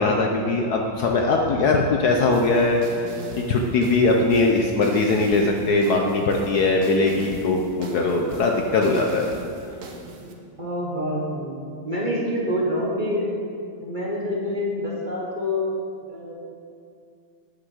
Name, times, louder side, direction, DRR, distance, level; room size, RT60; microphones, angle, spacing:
voice 1, 0.0-3.1 3.4-9.3, left 3 dB, 65° left, 1 dB, 1.1 m, -21 dB
sound 1, 2.3-10.3, right 2 dB, 50° right, 1.1 m, -40 dB
voice 2, 10.2-11.6 11.8-13.4 13.8-15.7 16.1-16.3, left 1 dB, 30° right, -4 dB, 1.1 m, -27 dB
9.6 x 6.4 x 6.3 m, 2.3 s
omnidirectional pair, 2.2 m